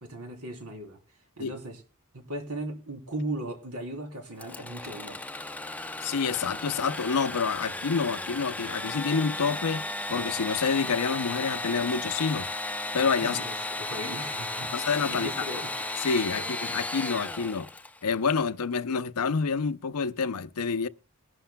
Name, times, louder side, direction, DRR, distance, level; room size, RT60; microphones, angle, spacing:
voice 1, 0.0-1.0 1.4-1.8 2.1-5.2 13.2-14.7 15.1-15.7 16.4-16.5, right 1 dB, 85° right, 3.4 m, -37 dB
Engine / Sawing, 4.4-18.1, left 2 dB, 5° left, 0.6 m, -35 dB
voice 2, 6.0-12.5 12.9-13.4 14.7-15.4 16.0-17.7 18.0-20.9, left 5 dB, 85° left, 0.6 m, -28 dB
21.0 x 11.5 x 2.2 m
head